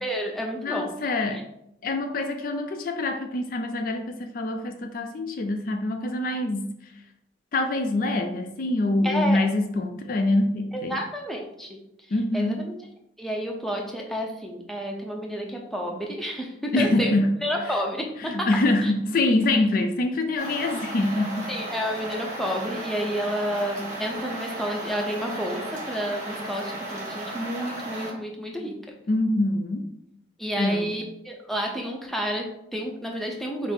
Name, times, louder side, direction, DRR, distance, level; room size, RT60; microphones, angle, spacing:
voice 1, 0.0-0.9 9.0-9.4 10.9-11.8 12.3-12.8 13.2-17.1 17.4-18.6 18.8-18.9 21.5-28.8 30.4-33.7, equal, ahead, 0 dB, 0.6 m, -30 dB
voice 2, 0.6-1.5 1.8-6.9 7.5-11.0 12.1-12.6 16.7-17.4 18.2-21.5 29.1-29.9 30.6-31.0, left 2 dB, 50° left, 5 dB, 0.4 m, -25 dB
sound 1, 20.4-28.1, right 1 dB, 40° right, 1.4 m, -35 dB
5.8 x 2.0 x 4.3 m, 0.79 s
head